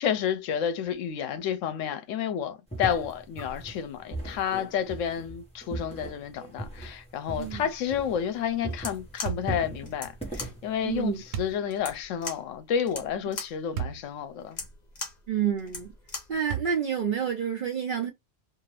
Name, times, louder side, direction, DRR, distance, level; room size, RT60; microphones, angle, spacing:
voice 1, 0.0-14.6, left 8 dB, 80° left, 0.9 m, -30 dB
sound 1, 2.7-8.4 8.6-11.5, right 1 dB, 5° left, 1.0 m, -38 dB
voice 2, 7.4-7.7 10.8-11.2 15.3-15.9 16.3-18.1, right 8 dB, 60° right, 0.5 m, -29 dB
sound 2, 8.7-16.4, left 3 dB, 40° left, 0.9 m, -40 dB
sound 3, 9.2-9.6 11.3-11.6 13.7-14.0 14.7-14.8 16.5-17.0, right 9 dB, 80° right, 1.0 m, -33 dB
2.6 x 2.5 x 3.1 m
omnidirectional pair, 1.3 m